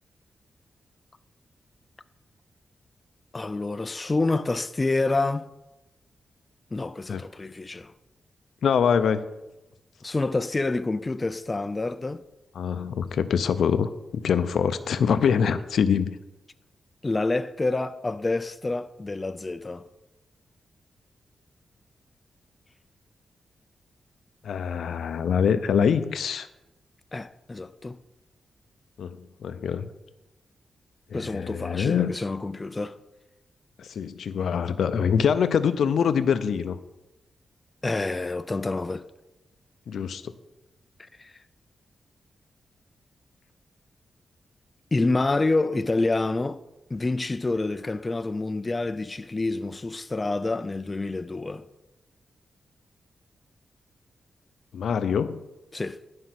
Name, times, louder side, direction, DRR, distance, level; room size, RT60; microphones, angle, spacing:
voice 1, 3.3-5.5 6.7-7.9 10.0-12.2 17.0-19.9 27.1-28.0 31.1-33.0 37.8-39.1 41.2-41.3 44.9-46.6 46.9-51.7 55.7-56.0, left 2 dB, 25° left, 0.4 m, -27 dB
voice 2, 8.6-9.2 12.6-16.2 24.4-26.5 29.0-29.9 31.1-32.1 33.8-36.8 39.9-40.3 54.7-55.4, left 7 dB, 80° left, 0.5 m, -24 dB
11.5 x 5.3 x 5.9 m
wide cardioid pair, 110°, 0 cm